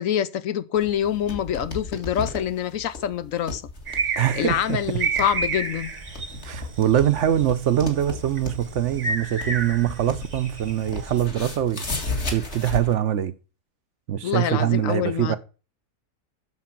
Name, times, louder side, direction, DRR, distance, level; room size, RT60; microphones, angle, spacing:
voice 1, 0.0-3.6 4.1-5.9 14.2-15.4, left 10 dB, 70° left, 1.0 m, -26 dB
sound 1, 0.7-12.9, left 2 dB, 50° left, 2.1 m, -35 dB
sound 2, 3.9-11.2, right 4 dB, 35° right, 0.9 m, -31 dB
voice 2, 4.2-4.8 6.4-11.9 12.3-13.3 14.1-15.4, right 11 dB, 65° right, 0.8 m, -23 dB
7.5 x 6.6 x 5.8 m
omnidirectional pair, 1.5 m